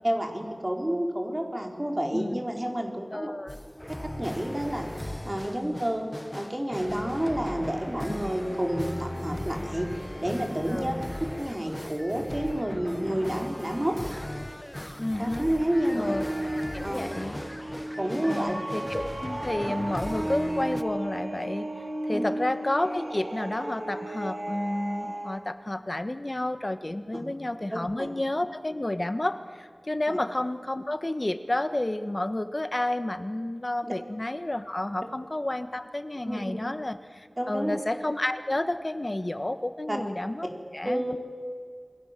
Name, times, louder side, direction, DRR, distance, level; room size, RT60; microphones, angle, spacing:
voice 1, 0.0-3.3 4.0-4.9 5.2-6.1 6.3-9.9 10.2-10.9 11.4-14.0 15.2-16.2 16.8-17.0 18.0-18.5 22.1-22.3 27.1-27.2 28.0-28.1 30.1-30.2 36.3-36.6 37.4-37.8 39.9-40.0 40.8-41.1, right 1 dB, 30° right, 2 dB, 4.6 m, -29 dB
voice 2, 3.1-3.6 5.5-5.8 8.1-8.2 10.7-11.0 15.0-15.5 15.9-16.2 16.5-17.4 18.2-21.7 22.0-40.5 40.7-41.2, left 1 dB, 45° left, 10 dB, 1.5 m, -31 dB
sound 1, 3.5-20.8, left 1 dB, 20° left, 1.2 m, -38 dB
sound 2, 14.9-25.4, right 1 dB, 65° right, 3.1 m, -34 dB
29.0 x 22.5 x 7.6 m, 2.2 s
wide cardioid pair, 45°, 0 cm